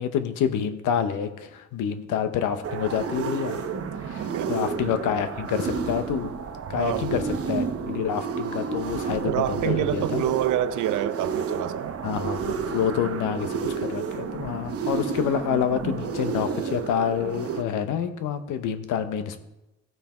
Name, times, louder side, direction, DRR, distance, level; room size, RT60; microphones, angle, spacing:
voice 1, 0.0-3.6 4.0-6.3 6.7-10.2 12.0-19.4, left 8 dB, 90° left, 1.0 m, -28 dB
sound 1, 2.6-17.6, right 5 dB, 50° right, 1.0 m, -31 dB
voice 2, 4.2-4.5 6.7-7.1 9.2-12.4, right 13 dB, 80° right, 0.6 m, -27 dB
15.0 x 5.7 x 4.4 m
cardioid pair, 90°, 30 cm